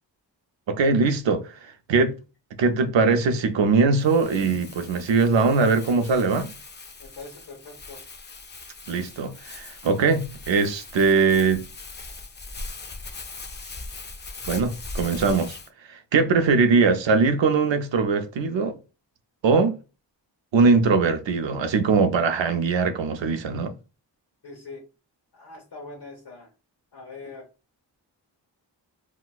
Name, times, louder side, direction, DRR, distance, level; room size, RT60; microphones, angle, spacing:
voice 1, 0.7-1.4 1.9-2.1 2.6-6.5 8.9-11.7 14.5-15.6 15.9-18.7 19.4-19.8 20.5-23.7, right 4 dB, 85° right, 0.6 m, -21 dB
Crumpling crinkling, 4.0-15.7, left 3 dB, 25° left, 0.4 m, -40 dB
voice 2, 7.0-8.0 24.4-24.8 25.3-26.5 26.9-27.5, left 3 dB, 60° left, 0.9 m, -42 dB
4.1 x 2.1 x 2.3 m
wide cardioid pair, 75°, 44 cm